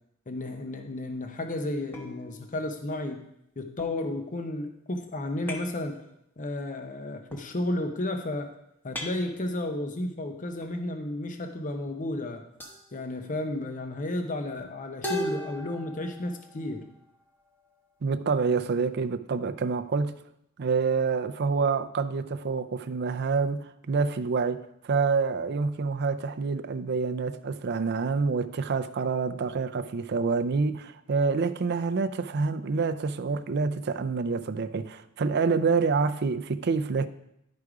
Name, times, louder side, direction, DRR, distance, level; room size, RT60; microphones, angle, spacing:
voice 1, 0.3-3.2 3.6-6.0 6.4-8.5 8.8-12.4 12.9-16.8, left 1 dB, 40° left, 0.7 m, -32 dB
sound 1, 1.9-3.0 3.8-4.7 5.5-5.9 7.3-7.9 8.9-9.8 10.6-10.9 12.0-12.1 12.6-12.9 15.0-17.8, left 1 dB, 10° left, 1.0 m, -39 dB
voice 2, 18.0-20.2 20.6-37.1, right 4 dB, 55° right, 0.4 m, -27 dB
10.5 x 4.9 x 4.8 m
head